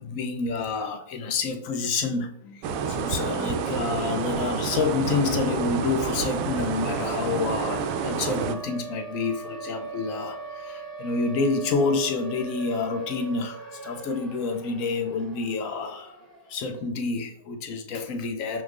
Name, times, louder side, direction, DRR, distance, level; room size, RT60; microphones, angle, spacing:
voice 1, 0.0-16.1 16.5-18.6, left 4 dB, 45° left, 0.5 m, -28 dB
sound 1, 2.6-8.6, right 6 dB, 45° right, 0.4 m, -29 dB
Siren, 4.9-16.8, right 4 dB, ahead, 1.1 m, -41 dB
Acoustic guitar / Strum, 5.0-8.9, left 3 dB, 90° left, 0.5 m, -37 dB
5.8 x 2.0 x 2.5 m
hypercardioid pair, 120°, 0 cm